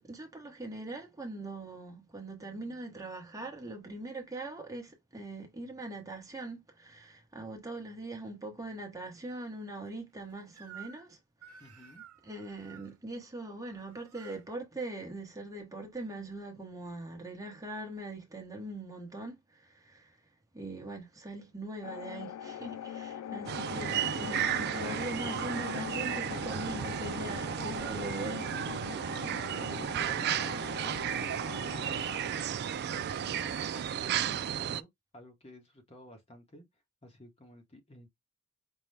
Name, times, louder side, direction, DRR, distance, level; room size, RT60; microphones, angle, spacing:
voice 1, 0.0-11.9 12.2-20.2 20.5-29.5, right 2 dB, 15° right, 1.0 m, -42 dB
Crying sobbing / Screech, 10.6-11.1 11.4-12.9 13.7-14.4, right 8 dB, 90° right, 0.9 m, -52 dB
voice 2, 11.6-12.0 29.5-34.9 35.1-36.6 37.0-38.1, equal, 25° left, 1.0 m, -52 dB
sound 1, 21.8-32.3, left 9 dB, 85° left, 0.3 m, -42 dB
sound 2, 23.5-34.8, right 9 dB, 45° right, 0.3 m, -33 dB
5.4 x 2.2 x 3.3 m
head